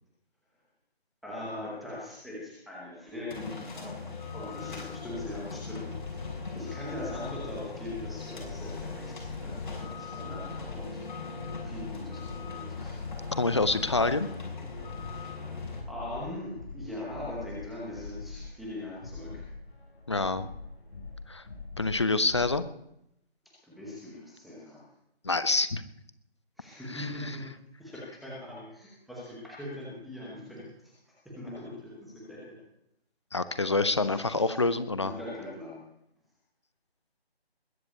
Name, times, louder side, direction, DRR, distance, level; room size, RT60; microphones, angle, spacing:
voice 1, 1.2-4.1 4.3-11.0 11.6-13.0 15.5-19.4 23.6-24.9 26.6-27.4 27.8-32.6 34.0-34.6 35.0-35.8, left 1 dB, ahead, -7 dB, 1.0 m, -41 dB
sound 1, 3.3-15.8, left 4 dB, 50° left, 5.9 m, -40 dB
sound 2, 5.1-22.5, left 3 dB, 75° left, 6.9 m, -44 dB
voice 2, 13.3-14.3 20.1-20.5 21.3-21.4 21.8-22.6 25.2-25.8 26.9-27.3 33.3-35.1, left 3 dB, 25° left, 14 dB, 0.7 m, -27 dB
21.0 x 7.8 x 8.3 m, 0.79 s
figure-of-eight pair, 165°, 31 cm